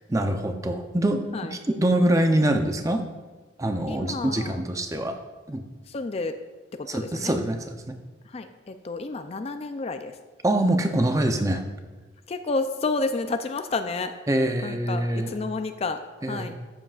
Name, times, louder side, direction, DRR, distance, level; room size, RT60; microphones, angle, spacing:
voice 1, 0.1-3.0 3.6-5.2 5.5-5.6 6.8-8.0 10.4-11.6 14.3-15.4 16.2-16.5, right 1 dB, 15° right, 6 dB, 0.5 m, -24 dB
voice 2, 3.9-4.6 5.9-6.4 6.7-7.3 8.3-10.2 12.3-14.1 14.6-16.0 16.3-16.5, left 3 dB, 30° left, 8 dB, 0.4 m, -30 dB
13.0 x 7.4 x 2.4 m, 1.3 s
head